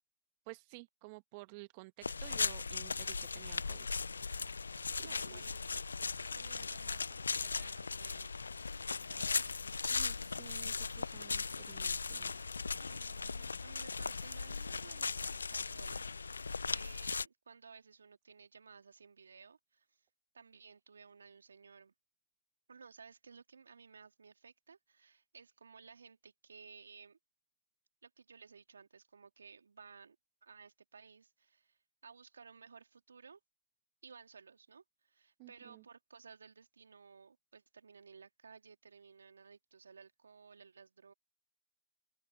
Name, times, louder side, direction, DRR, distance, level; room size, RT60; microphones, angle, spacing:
voice 1, 0.5-3.9 5.0-5.4 9.9-12.3 35.4-35.8, right 26 dB, 40° right, 1.2 m, -53 dB
sound 1, 2.0-17.2, left 4 dB, 80° left, 0.3 m, -38 dB
voice 2, 4.7-8.3 8.9-9.6 12.8-20.1 20.3-21.9 22.7-27.2 28.0-30.2 30.4-33.4 34.0-41.1, right 5 dB, 75° right, 3.0 m, -57 dB
open air
figure-of-eight pair, 120°, 0 cm